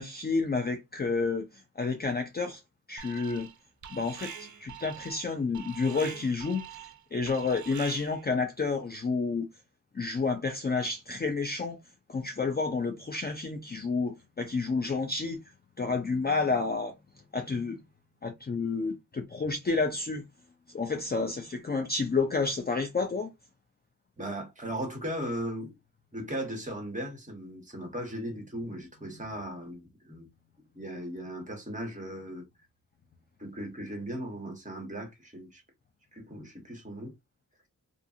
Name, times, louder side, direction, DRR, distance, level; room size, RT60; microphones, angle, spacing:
voice 1, 0.0-2.6 2.9-3.5 3.9-6.9 7.1-9.5 9.9-11.8 12.1-15.4 15.8-16.9 17.3-17.8 18.2-20.2 20.7-23.3, left 4 dB, 30° left, 0.5 m, -30 dB
Alarm, 3.0-3.6 3.8-8.3, right 9 dB, 55° right, 0.5 m, -45 dB
voice 2, 24.2-25.7 26.1-30.3 30.7-32.4 33.4-35.6 36.1-37.1, right 1 dB, 20° right, 1.3 m, -37 dB
2.4 x 2.4 x 2.7 m
wide cardioid pair, 95°, 34 cm